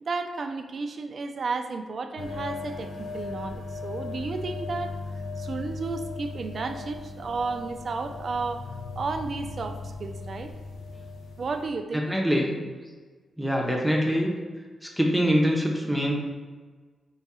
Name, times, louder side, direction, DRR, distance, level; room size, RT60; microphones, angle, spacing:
voice 1, 0.0-5.0 5.4-8.7 9.0-10.5 11.4-12.1, right 4 dB, 55° right, 7 dB, 0.3 m, -32 dB
sound 1, 2.2-11.7, left 3 dB, 90° left, 0.5 m, -37 dB
voice 2, 11.9-12.6 13.4-14.3 15.0-16.1, equal, 5° right, 0 dB, 0.6 m, -24 dB
3.7 x 2.3 x 4.2 m, 1.4 s
cardioid pair, 80°, 0 cm